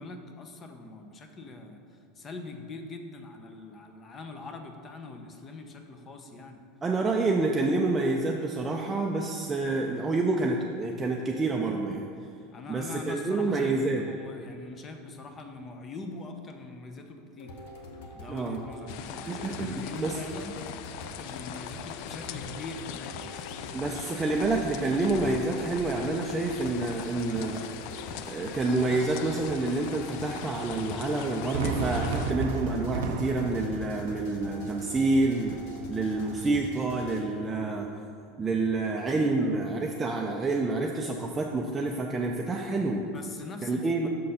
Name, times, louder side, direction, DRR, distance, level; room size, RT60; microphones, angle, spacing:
voice 1, 0.0-6.6 7.2-7.3 12.5-17.5 18.1-20.6 21.0-24.1 43.0-44.1, left 3 dB, 30° left, 5 dB, 0.7 m, -43 dB
voice 2, 6.8-12.0 12.7-14.0 18.3-18.6 19.3-20.2 23.7-27.6 28.3-35.6 35.9-37.9 38.4-43.0 43.6-44.1, right 3 dB, 20° right, 0 dB, 0.5 m, -28 dB
sound 1, 17.4-37.2, left 1 dB, 75° left, 1.0 m, -45 dB
sound 2, 18.9-32.3, left 10 dB, 60° left, 0.3 m, -40 dB
Fireworks, 31.5-36.6, right 4 dB, 85° right, 0.5 m, -34 dB
6.5 x 4.0 x 5.5 m, 2.5 s
supercardioid pair, 125°, 0 cm